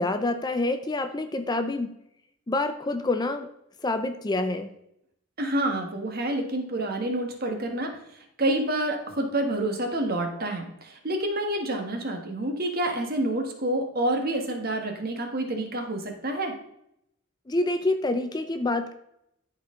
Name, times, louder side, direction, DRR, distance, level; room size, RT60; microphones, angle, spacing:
voice 1, 0.0-1.9 2.5-3.5 3.8-4.7 17.5-18.9, left 2 dB, 20° left, 8 dB, 0.4 m, -27 dB
voice 2, 5.4-16.5, right 1 dB, 45° right, 3 dB, 1.4 m, -28 dB
13.0 x 4.5 x 3.7 m, 0.77 s
head